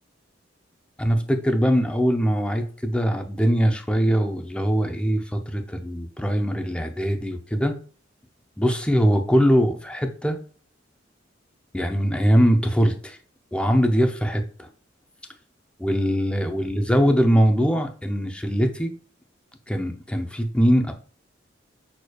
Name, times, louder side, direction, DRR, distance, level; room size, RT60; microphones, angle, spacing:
voice 1, 1.0-7.8 8.6-10.4 11.7-13.2 13.5-14.7 15.8-18.9 19.7-20.9, equal, 5° left, 5 dB, 0.5 m, -22 dB
6.3 x 3.1 x 2.3 m, 0.41 s
head